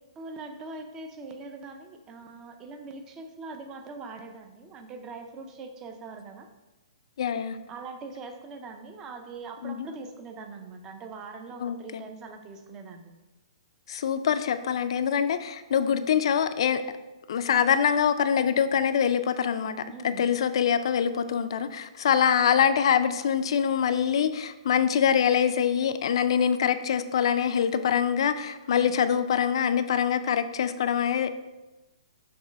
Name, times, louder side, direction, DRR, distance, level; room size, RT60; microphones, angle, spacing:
voice 1, 0.2-6.5 7.7-13.1 19.9-20.3 28.7-29.0, right 3 dB, 15° right, 5 dB, 0.5 m, -42 dB
voice 2, 7.2-7.6 9.6-9.9 11.6-12.0 13.9-16.8 17.3-19.8 20.0-31.4, left 8 dB, 55° left, 11 dB, 0.4 m, -24 dB
6.1 x 3.0 x 5.1 m, 1.1 s
hypercardioid pair, 165°, 3 cm